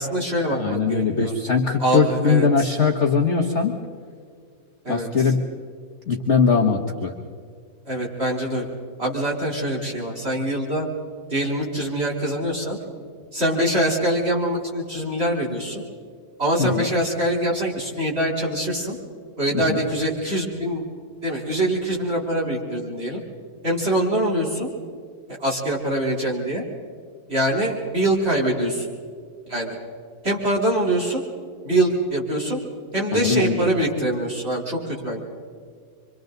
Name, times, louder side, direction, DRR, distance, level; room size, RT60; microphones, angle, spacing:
voice 1, 0.0-1.3 1.8-2.5 4.8-5.1 7.9-8.7 9.0-10.9 11.3-12.8 13.3-15.8 16.4-19.0 19.4-20.8 21.2-23.2 23.6-24.7 25.4-26.6 27.3-28.9 29.5-29.8 30.2-31.2 31.6-32.6 32.9-35.2, right 1 dB, 35° right, -4 dB, 3.9 m, -24 dB
voice 2, 0.5-3.8 4.9-5.4 6.1-7.1 16.6-16.9 19.5-19.8 33.1-33.7, left 5 dB, 40° left, 1 dB, 1.5 m, -21 dB
28.0 x 25.0 x 4.0 m, 2.1 s
omnidirectional pair, 2.0 m